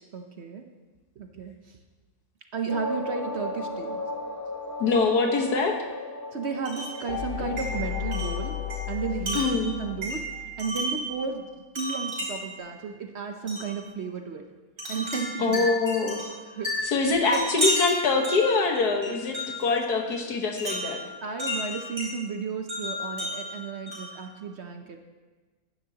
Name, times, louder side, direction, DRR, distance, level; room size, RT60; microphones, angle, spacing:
voice 1, 0.1-0.6 1.2-1.8 2.5-4.0 6.3-8.6 8.9-10.2 10.6-11.5 11.7-14.5 14.9-15.7 16.5-17.4 21.2-25.0, right 5 dB, 55° right, 5 dB, 0.9 m, -33 dB
sound 1, 2.7-8.9, left 1 dB, 15° left, 0.7 m, -36 dB
voice 2, 4.8-5.8 9.3-9.7 15.4-16.2 16.8-21.0, left 4 dB, 80° left, 2 dB, 1.8 m, -24 dB
Wind chime, 6.6-7.0 7.6-11.1 11.7-12.6 13.5-13.7 14.8-19.7 20.6-22.1 22.7-24.2, equal, 35° right, 4.6 m, -32 dB
sound 2, 7.1-10.8, left 11 dB, 55° left, 0.7 m, -34 dB
16.0 x 11.0 x 2.9 m, 1.3 s
omnidirectional pair, 1.6 m